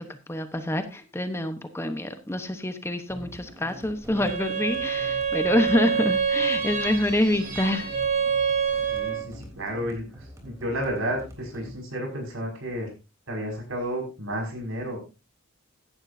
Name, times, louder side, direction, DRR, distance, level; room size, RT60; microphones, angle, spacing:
voice 1, 0.0-7.9, left 1 dB, 10° left, 8 dB, 1.0 m, -26 dB
sound 1, 3.1-11.7, equal, 15° right, 3.4 m, -45 dB
Bowed string instrument, 4.1-9.3, right 6 dB, 45° right, 6.0 m, -27 dB
voice 2, 8.9-12.9 13.3-15.0, equal, 70° right, 2 dB, 5.8 m, -32 dB
15.5 x 11.0 x 2.7 m, 0.29 s
head